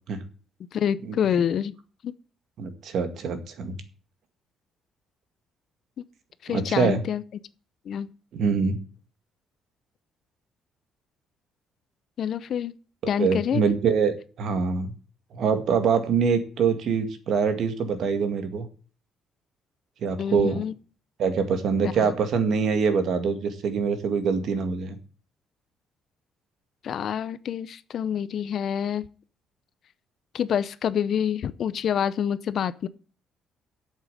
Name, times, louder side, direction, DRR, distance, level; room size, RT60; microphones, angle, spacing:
voice 1, 0.7-1.7 2.0-2.1 6.0-6.1 6.4-7.2 7.9-8.1 12.2-12.7 13.1-13.6 20.2-20.7 22.0-22.1 26.8-29.0 30.3-32.9, left 8 dB, 50° left, 0.7 m, -27 dB
voice 2, 2.6-3.8 6.5-7.0 8.3-8.8 13.2-14.9 15.3-18.7 20.0-20.6 21.2-25.0, right 5 dB, 55° right, 1.9 m, -24 dB
8.8 x 7.4 x 7.8 m
cardioid pair, 150°, 0 cm